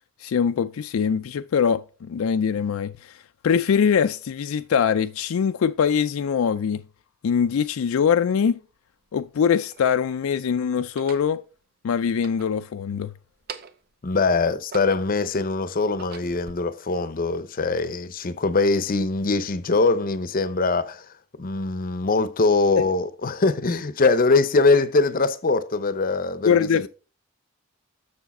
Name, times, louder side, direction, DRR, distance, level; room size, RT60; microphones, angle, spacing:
voice 1, 0.2-3.2 3.4-6.8 7.2-8.6 9.1-11.4 11.8-13.1 22.8-22.9 26.4-26.9, left 7 dB, 75° left, 0.4 m, -22 dB
sound 1, 8.3-8.4 9.2-10.1 10.8-11.3 12.1-13.0 13.3-13.9 14.4-15.3 15.8-16.5, right 6 dB, 50° right, 0.7 m, -42 dB
voice 2, 14.0-21.0 21.4-26.9, left 3 dB, 40° left, 0.6 m, -22 dB
7.1 x 6.7 x 4.2 m
head